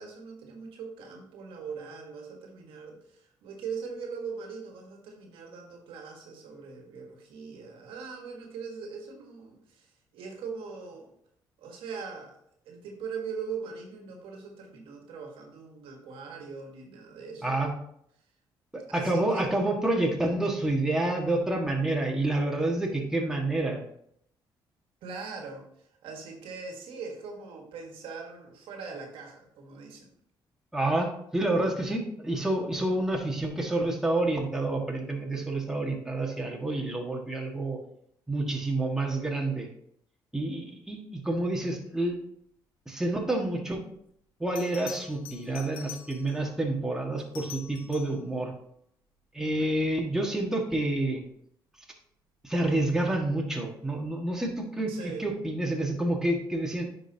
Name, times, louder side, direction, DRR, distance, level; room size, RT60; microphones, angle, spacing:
voice 1, 0.0-9.9 10.1-11.1 11.6-12.4 12.6-17.6 18.9-19.5 25.0-25.6 26.0-30.1 54.9-55.2, right 5 dB, 85° right, 2 dB, 1.5 m, -41 dB
voice 2, 17.4-17.7 18.7-23.8 30.7-37.8 38.3-39.7 40.3-42.2 42.9-43.8 44.4-48.5 49.3-51.2 52.4-56.8, right 2 dB, 5° right, 0 dB, 1.6 m, -28 dB
Bell, 44.6-46.5 47.2-48.3 50.9-51.2, left 9 dB, 90° left, 0.7 m, -45 dB
9.8 x 5.3 x 2.8 m, 0.70 s
cardioid pair, 85°, 9 cm